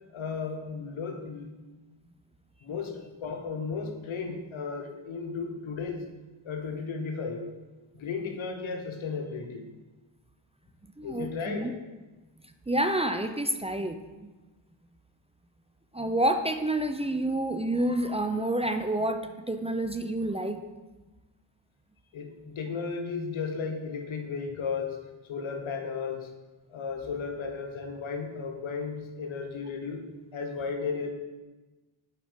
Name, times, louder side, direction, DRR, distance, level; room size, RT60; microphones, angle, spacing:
voice 1, 0.1-1.5 2.6-6.1 6.4-7.5 7.9-9.7 11.0-11.7 22.1-25.0 25.3-26.3 26.7-30.0 30.3-31.1, left 5 dB, 85° left, 4 dB, 1.2 m, -34 dB
voice 2, 11.0-11.7 12.7-14.3 15.9-20.6, right 1 dB, 15° right, 7 dB, 0.5 m, -28 dB
7.1 x 5.1 x 5.1 m, 1.2 s
cardioid pair, 55°, 47 cm